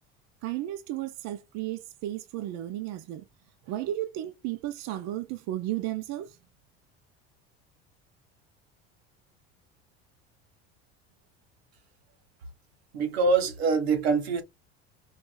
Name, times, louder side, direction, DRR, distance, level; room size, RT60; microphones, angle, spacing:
voice 1, 0.4-3.2 3.6-6.4, right 14 dB, 60° right, 0.7 m, -34 dB
voice 2, 12.9-14.4, right 4 dB, 90° right, 1.2 m, -24 dB
4.9 x 2.6 x 2.3 m
supercardioid pair, 90°, 31 cm